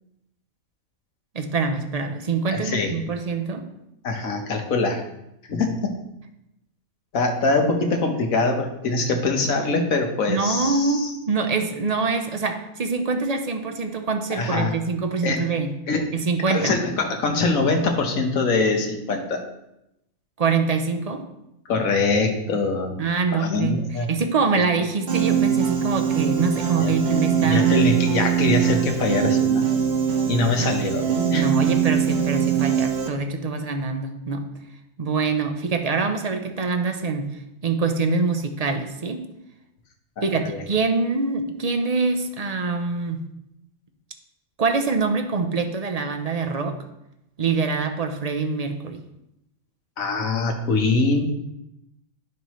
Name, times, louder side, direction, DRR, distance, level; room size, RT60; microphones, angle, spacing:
voice 1, 1.3-3.7 10.3-15.7 16.1-16.8 20.4-21.2 23.0-27.7 30.6-30.7 31.3-34.5 35.0-39.3 40.2-43.2 44.6-46.8 47.4-49.0, right 4 dB, 40° right, 6 dB, 0.6 m, -25 dB
voice 2, 2.5-2.9 4.0-5.0 5.5-5.9 7.1-11.1 14.3-14.7 15.2-15.4 15.9-16.1 16.5-19.4 21.7-23.0 23.3-24.1 26.8-26.9 27.4-29.7 30.3-31.4 40.2-40.6 50.0-51.2, left 3 dB, 75° left, 3 dB, 1.5 m, -23 dB
Piano, 25.1-33.1, right 8 dB, 55° right, 1.1 m, -22 dB
11.0 x 6.0 x 3.1 m, 0.85 s
omnidirectional pair, 1.4 m